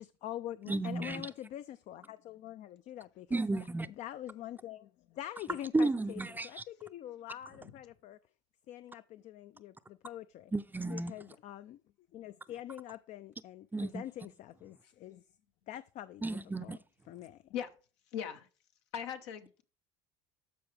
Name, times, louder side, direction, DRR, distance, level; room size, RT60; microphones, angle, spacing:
voice 1, 0.0-3.4 3.8-8.2 8.7-10.5 10.9-11.8 12.1-15.2 15.7-16.3 16.6-16.8 17.1-17.5, left 12 dB, 55° left, 0.4 m, -45 dB
voice 2, 0.7-1.3 3.3-3.9 5.7-6.6 10.5-11.1 13.7-14.0 16.2-16.8, right 2 dB, 15° right, 0.5 m, -33 dB
voice 3, 18.1-18.5 18.9-19.6, left 9 dB, 80° left, 1.0 m, -39 dB
13.0 x 4.6 x 3.3 m
hypercardioid pair, 80°, 15 cm